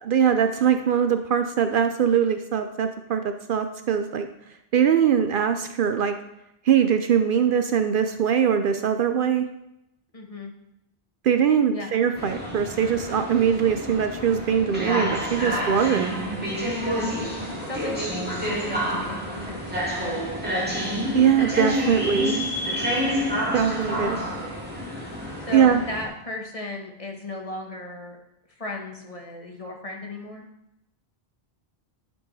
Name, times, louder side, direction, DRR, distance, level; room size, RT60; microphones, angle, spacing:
voice 1, 0.0-4.3 4.7-6.1 6.7-9.5 11.2-16.2 21.1-22.4 23.5-24.2 25.5-25.8, right 8 dB, 65° right, 8 dB, 0.7 m, -22 dB
voice 2, 10.1-10.5 11.7-11.9 16.8-17.1 17.6-20.3 23.9-24.5 25.5-28.2 28.5-30.5, left 1 dB, 35° left, 1 dB, 1.2 m, -36 dB
sound 1, 12.1-26.1, equal, 10° right, 1.9 m, -28 dB
11.0 x 4.7 x 4.0 m, 0.84 s
omnidirectional pair, 1.1 m